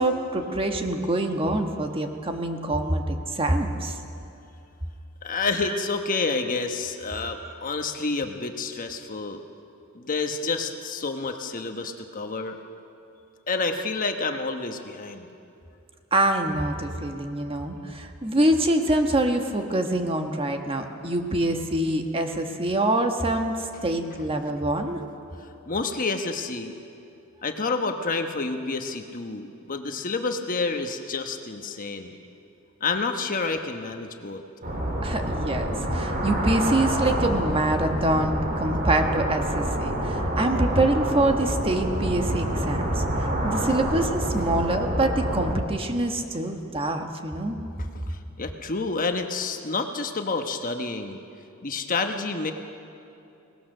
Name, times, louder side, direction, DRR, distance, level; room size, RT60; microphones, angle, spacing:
voice 1, 0.0-4.0 5.6-5.8 7.4-7.5 16.1-25.0 35.0-47.6, right 1 dB, 25° right, 4 dB, 1.3 m, -25 dB
voice 2, 5.2-9.4 9.9-12.6 13.5-15.3 25.7-26.7 27.4-32.2 32.8-34.4 47.9-51.2 51.6-52.5, left 3 dB, 40° left, 6 dB, 1.1 m, -29 dB
sound 1, 34.6-45.5, right 1 dB, 40° right, 2.7 m, -27 dB
23.0 x 18.5 x 6.6 m, 2.7 s
head